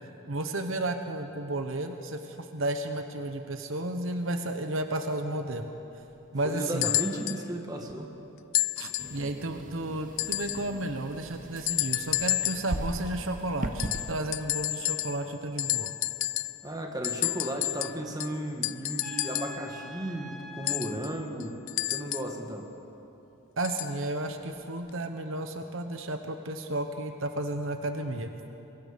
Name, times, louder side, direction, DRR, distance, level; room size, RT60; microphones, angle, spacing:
voice 1, 0.0-5.7 6.3-6.9 8.8-15.9 23.6-28.3, right 1 dB, 65° right, 6 dB, 1.1 m, -33 dB
voice 2, 6.4-8.1 16.6-21.6 21.9-22.7, right 1 dB, 20° right, 2 dB, 1.9 m, -34 dB
sound 1, 6.8-7.4 8.5-9.2 10.2-10.7 11.7-12.8 13.8-15.3 15.6-16.7 17.0-19.6 20.7-22.4 23.6-24.0 24.9-25.0, left 17 dB, 70° left, 0.4 m, -31 dB
sound 2, 9.0-14.1, right 1 dB, 40° right, 1.0 m, -38 dB
Trumpet, 19.0-21.0, equal, ahead, 3.7 m, -44 dB
24.0 x 23.0 x 5.3 m, 3.0 s
head